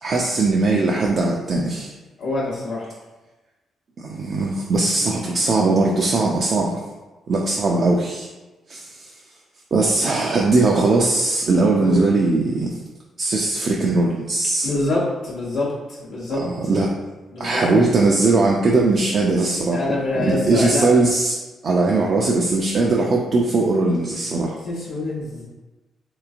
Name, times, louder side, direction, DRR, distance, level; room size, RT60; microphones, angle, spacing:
voice 1, 0.0-1.9 4.0-6.8 7.3-8.3 8.7-9.1 9.7-12.8 13.2-14.7 16.4-16.9 17.4-19.8 20.2-21.4 21.6-24.6, right 3 dB, 55° right, -2 dB, 0.4 m, -19 dB
voice 2, 2.2-2.9 11.8-12.0 14.6-16.7 17.3-17.6 19.7-20.9 24.6-25.5, left 2 dB, 90° left, -10 dB, 0.7 m, -25 dB
3.3 x 3.0 x 2.4 m, 1.1 s
supercardioid pair, 55°, 0 cm